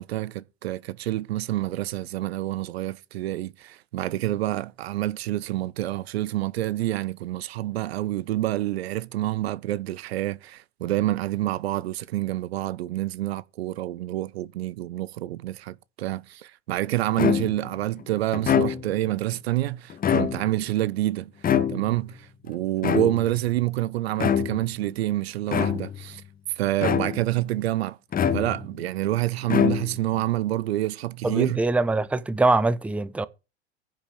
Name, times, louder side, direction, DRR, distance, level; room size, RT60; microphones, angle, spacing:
voice 1, 0.0-21.3 21.7-26.2 26.6-28.0 28.3-31.6, right 15 dB, 65° right, 0.7 m, -27 dB
sound 1, 17.2-17.7 18.3-19.1 19.9-20.7 21.4-22.1 22.8-23.5 24.2-24.7 25.5-26.1 26.8-27.4 28.1-28.8 29.4-30.2, left 8 dB, 25° left, 1.5 m, -25 dB
voice 2, 31.2-33.3, right 2 dB, 5° right, 0.7 m, -23 dB
10.5 x 5.6 x 8.2 m
figure-of-eight pair, 85°, 34 cm